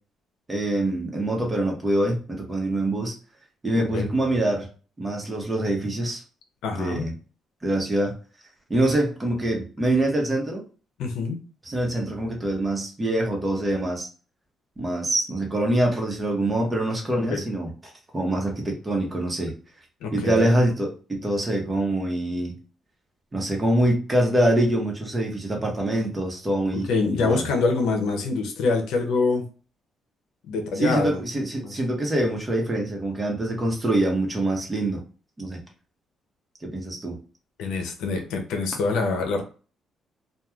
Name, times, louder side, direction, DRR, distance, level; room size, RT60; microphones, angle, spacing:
voice 1, 0.5-3.1 3.6-4.7 5.0-6.2 6.7-7.1 7.6-8.1 8.7-10.6 11.6-14.1 14.8-17.7 18.1-19.5 20.1-22.6 23.3-27.5 30.8-35.0 35.4-35.6 36.6-37.2, right 1 dB, 25° right, 0 dB, 0.9 m, -25 dB
voice 2, 3.8-4.1 6.6-7.0 11.0-11.4 17.3-17.4 20.0-20.5 26.9-29.4 30.5-31.1 31.6-31.7 37.6-39.4, left 3 dB, 90° left, 3 dB, 0.6 m, -25 dB
3.0 x 2.3 x 2.3 m, 0.38 s
cardioid pair, 90°, 0 cm